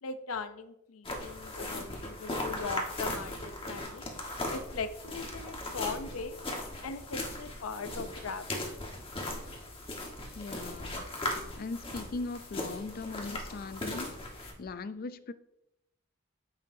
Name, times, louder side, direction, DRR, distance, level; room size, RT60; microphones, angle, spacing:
voice 1, 0.0-4.0 4.5-6.4 6.8-8.8, left 4 dB, 90° left, 11 dB, 0.6 m, -39 dB
sound 1, 1.0-14.5, left 1 dB, 25° left, 1.4 m, -38 dB
voice 2, 10.3-11.1 11.6-14.1 14.4-15.3, left 3 dB, 45° left, 14 dB, 0.4 m, -39 dB
9.3 x 8.0 x 2.7 m, 0.85 s
head